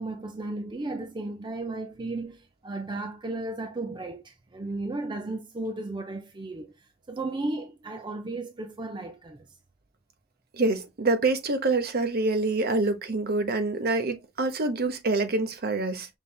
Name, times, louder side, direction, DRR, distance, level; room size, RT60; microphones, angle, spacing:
voice 1, 0.0-6.7 7.1-9.5, right 2 dB, 25° right, 0.5 m, -34 dB
voice 2, 10.5-16.1, right 3 dB, 50° right, 0.9 m, -26 dB
5.4 x 3.2 x 2.3 m
head